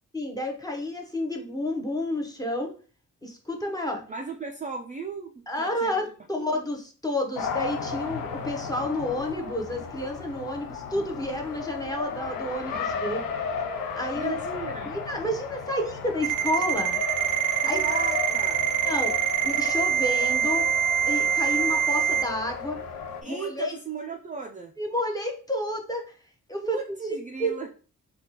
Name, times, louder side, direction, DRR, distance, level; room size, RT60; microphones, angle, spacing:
voice 1, 0.1-2.7 3.2-4.0 5.5-13.2 13.9-14.4 14.8-17.0 17.6-17.8 18.8-20.6 21.1-22.8 23.2-23.8 24.8-26.0 26.5-26.8 27.4-27.5, left 1 dB, 10° left, 1 dB, 0.7 m, -30 dB
voice 2, 4.1-6.0 6.4-6.6 14.1-15.0 17.6-18.7 23.2-24.7 26.6-27.7, right 4 dB, 25° right, 2 dB, 0.3 m, -36 dB
Race car auto racing, 7.4-23.2, left 5 dB, 85° left, 0.5 m, -34 dB
Ringtone, 16.2-22.2, right 9 dB, 70° right, 0.6 m, -24 dB
3.4 x 2.3 x 2.8 m, 0.38 s
cardioid pair, 90°, 34 cm